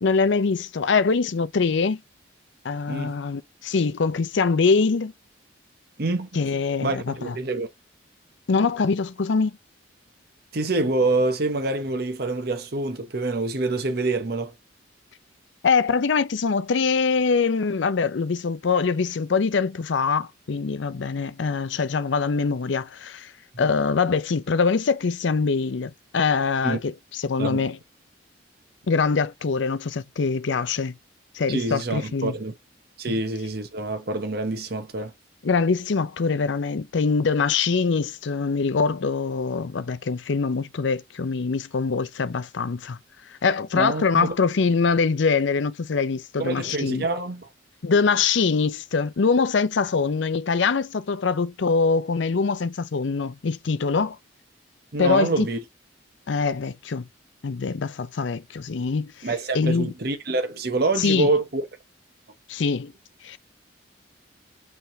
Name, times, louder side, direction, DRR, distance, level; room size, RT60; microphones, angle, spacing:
voice 1, 0.0-2.0 2.6-5.1 6.3-7.3 8.5-9.5 15.6-23.3 23.6-27.8 28.9-30.9 31.3-32.3 33.1-33.2 35.4-43.0 43.3-47.0 47.8-54.2 55.0-55.5 56.3-57.1 57.4-59.1 59.5-59.9 61.0-61.3 62.5-62.9 63.2-63.4, left 4 dB, 70° left, 0.5 m, -23 dB
voice 2, 6.0-6.5 6.8-7.7 10.5-14.5 26.6-26.8 27.4-27.7 31.5-32.5 33.0-35.1 43.7-44.3 46.4-47.5 54.9-55.6 59.2-61.7, right 2 dB, 55° right, 0.9 m, -26 dB
5.7 x 3.4 x 2.7 m
head